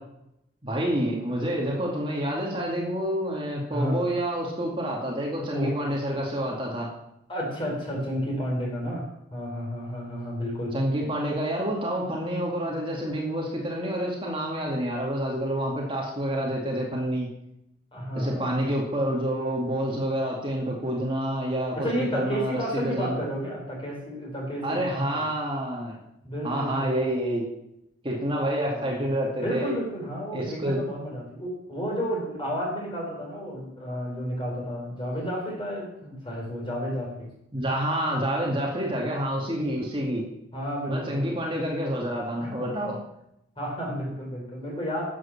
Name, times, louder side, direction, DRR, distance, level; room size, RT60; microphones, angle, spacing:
voice 1, 0.6-6.9 10.7-17.3 18.2-23.2 24.6-26.0 26.4-27.4 28.0-29.7 30.3-30.8 37.5-40.2 40.9-43.0, right 1 dB, 25° right, -2 dB, 2.3 m, -28 dB
voice 2, 3.7-4.0 5.5-5.8 7.3-9.0 9.3-10.8 17.9-18.5 21.7-25.3 26.2-27.1 28.7-29.0 29.4-37.3 40.5-41.3 42.4-42.7 43.6-45.0, equal, 25° left, -2 dB, 4.9 m, -31 dB
11.0 x 8.1 x 7.3 m, 0.82 s
head